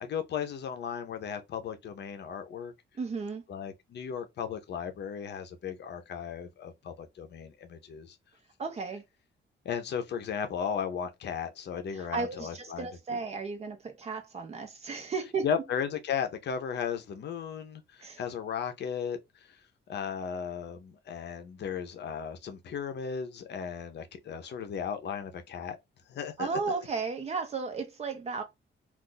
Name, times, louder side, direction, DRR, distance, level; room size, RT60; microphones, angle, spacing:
voice 1, 0.0-2.7 3.5-8.2 9.6-13.2 15.4-19.2 19.9-25.8 26.1-26.8, left 7 dB, 55° left, 0.7 m, -35 dB
voice 2, 3.0-3.4 8.6-9.0 11.9-15.5 18.0-18.2 26.4-28.4, right 4 dB, 30° right, 0.8 m, -34 dB
2.5 x 2.4 x 3.8 m
wide cardioid pair, 175°, 20 cm